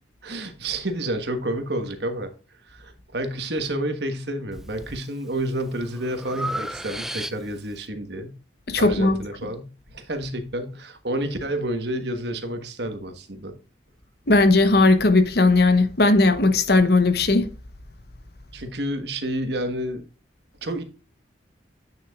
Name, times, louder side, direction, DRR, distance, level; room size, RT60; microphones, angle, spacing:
voice 1, 0.2-2.3 2.6-8.4 8.8-13.5 18.5-20.1 20.6-20.8, right 1 dB, 60° right, 1.3 m, -29 dB
Breathing, 4.5-5.0 5.5-7.7, right 1 dB, ahead, 0.4 m, -34 dB
voice 2, 8.7-9.2 14.3-17.5, left 2 dB, 55° left, 1.0 m, -17 dB
9.0 x 6.5 x 2.4 m
head